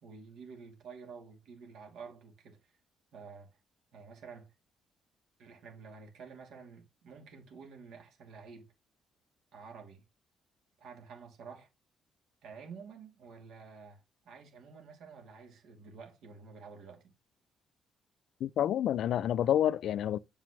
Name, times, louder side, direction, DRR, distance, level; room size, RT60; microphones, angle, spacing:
voice 1, 0.0-2.8 3.1-3.5 3.9-4.5 5.4-8.7 9.5-10.1 10.8-11.7 12.4-17.1, right 5 dB, 80° right, 2.7 m, -50 dB
voice 2, 18.4-20.2, left 10 dB, 75° left, 0.4 m, -28 dB
7.5 x 5.0 x 3.2 m
cardioid pair, 90°, 0 cm